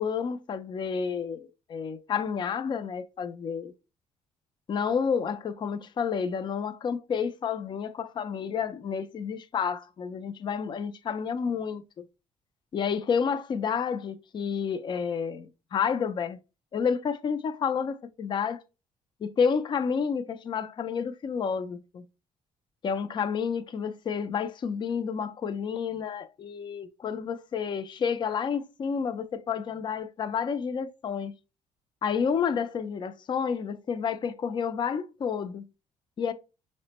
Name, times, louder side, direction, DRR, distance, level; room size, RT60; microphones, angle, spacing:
voice 1, 0.0-3.7 4.7-12.0 12.7-16.4 16.7-18.6 19.2-22.1 22.8-31.3 32.0-35.7 36.2-36.3, left 6 dB, 35° left, 0.3 m, -30 dB
4.9 x 2.1 x 2.8 m
cardioid pair, 95°, 14 cm